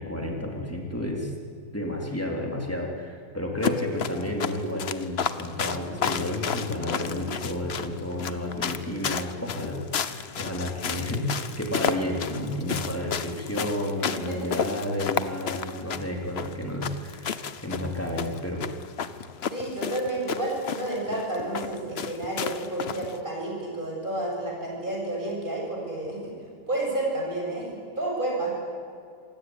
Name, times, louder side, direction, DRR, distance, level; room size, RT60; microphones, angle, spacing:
voice 1, 0.0-1.3 1.7-17.4 17.6-18.6, left 1 dB, 5° left, 0 dB, 3.7 m, -31 dB
sound 1, 3.6-23.2, left 7 dB, 65° left, 0.6 m, -32 dB
voice 2, 14.1-14.5 19.5-26.3 26.7-27.7 28.0-28.5, right 1 dB, 20° right, -2 dB, 7.6 m, -30 dB
26.5 x 17.0 x 9.8 m, 2.3 s
omnidirectional pair, 2.3 m